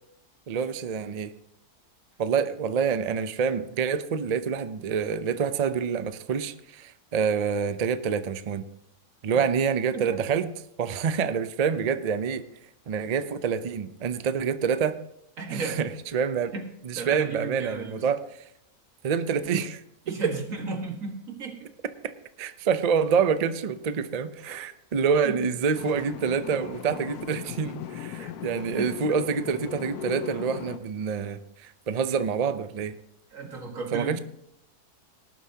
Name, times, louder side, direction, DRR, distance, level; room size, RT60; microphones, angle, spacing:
voice 1, 0.5-1.3 2.2-8.6 9.2-10.5 10.8-12.4 12.9-15.0 15.5-16.5 16.8-18.2 19.0-19.8 22.0-22.1 22.4-33.0 33.9-34.2, right 6 dB, 75° right, 11 dB, 0.3 m, -27 dB
voice 2, 9.9-10.2 15.4-15.9 16.4-18.1 20.1-21.7 24.5-24.7 25.2-25.4 28.2-28.3 28.6-29.2 33.3-34.2, right 4 dB, 60° right, 3 dB, 2.1 m, -35 dB
sound 1, 25.7-30.8, left 10 dB, 85° left, 1.2 m, -38 dB
18.5 x 11.5 x 2.8 m, 0.77 s
omnidirectional pair, 1.6 m